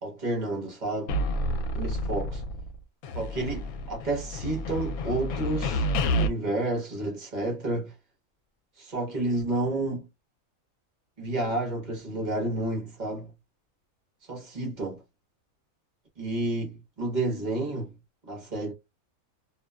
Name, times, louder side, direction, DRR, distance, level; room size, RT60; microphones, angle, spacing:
voice 1, 0.0-1.1 1.7-2.4 3.1-5.8 6.1-7.9 8.8-10.1 11.2-13.3 14.3-15.0 16.2-17.9 18.3-18.7, right 2 dB, 35° right, 0.9 m, -30 dB
sound 1, 1.1-2.8 3.0-6.3, equal, 80° left, 1.0 m, -29 dB
2.5 x 2.1 x 2.2 m
omnidirectional pair, 1.5 m